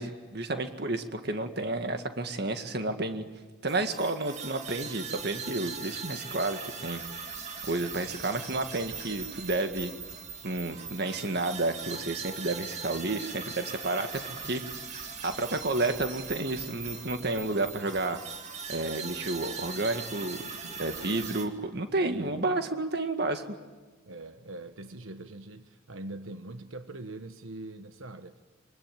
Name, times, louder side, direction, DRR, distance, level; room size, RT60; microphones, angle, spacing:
voice 1, 0.0-3.2 3.6-7.0 7.6-9.9 10.4-14.6 15.2-18.2 18.7-23.6, right 2 dB, 55° right, 7 dB, 2.0 m, -31 dB
sound 1, 3.7-21.5, right 5 dB, 35° right, 2.5 m, -40 dB
voice 2, 10.5-11.0 20.8-21.2 22.0-22.5 24.1-28.4, right 2 dB, 90° right, 9 dB, 1.2 m, -43 dB
25.0 x 24.0 x 9.1 m, 1.3 s
head